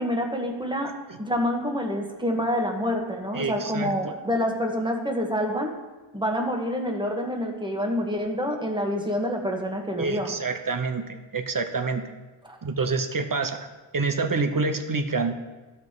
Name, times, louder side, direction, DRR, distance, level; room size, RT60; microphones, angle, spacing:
voice 1, 0.0-0.9 1.2-5.7 6.1-10.3 12.4-12.6, equal, 10° right, 1 dB, 1.5 m, -27 dB
voice 2, 3.3-3.9 10.0-12.1 12.6-13.7 13.9-15.3, right 4 dB, 45° right, 8 dB, 0.8 m, -27 dB
13.0 x 5.5 x 4.0 m, 1.2 s
wide cardioid pair, 40°, 47 cm